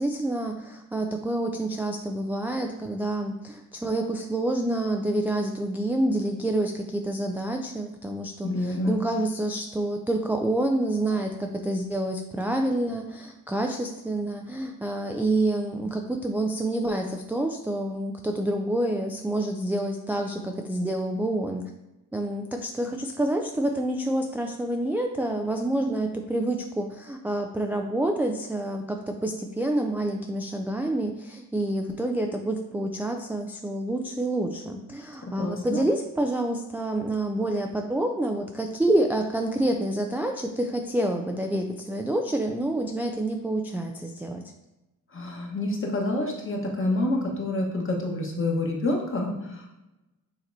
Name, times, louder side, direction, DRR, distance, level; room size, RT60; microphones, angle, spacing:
voice 1, 0.0-21.7 22.1-44.5, right 1 dB, 5° right, 2 dB, 0.3 m, -28 dB
voice 2, 8.4-9.0 35.3-35.8 45.1-49.7, left 2 dB, 35° left, 0 dB, 1.2 m, -28 dB
6.5 x 2.9 x 2.7 m, 0.99 s
cardioid pair, 65°, 36 cm